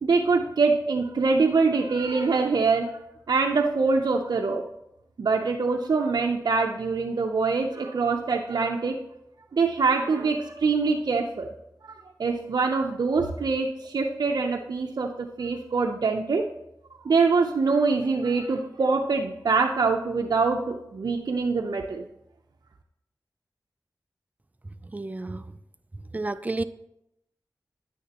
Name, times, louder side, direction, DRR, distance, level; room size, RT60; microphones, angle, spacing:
voice 1, 0.0-2.9 3.3-4.6 5.2-9.0 9.5-11.5 11.8-16.5 17.0-22.1, right 4 dB, 75° right, 2 dB, 0.6 m, -24 dB
voice 2, 24.8-25.6 26.1-26.6, right 2 dB, 20° right, 12 dB, 0.4 m, -31 dB
9.8 x 9.4 x 2.9 m, 0.82 s
wide cardioid pair, 55°, 7 cm